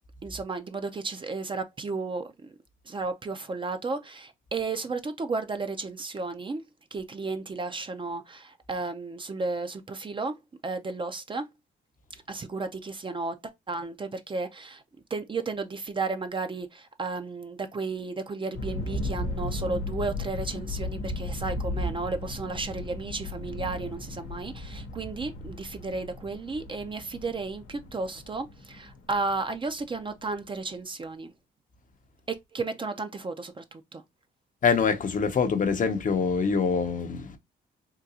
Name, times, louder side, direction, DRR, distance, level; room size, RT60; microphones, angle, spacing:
voice 1, 0.2-2.5 2.9-6.6 6.9-10.4 10.6-11.5 12.3-14.8 15.1-31.3 32.3-34.0, right 3 dB, 25° right, 0.5 m, -33 dB
sound 1, 18.5-30.1, left 2 dB, 90° left, 0.8 m, -35 dB
voice 2, 34.6-37.4, left 5 dB, 40° left, 0.6 m, -25 dB
3.7 x 2.3 x 2.7 m
cardioid pair, 90°, 20 cm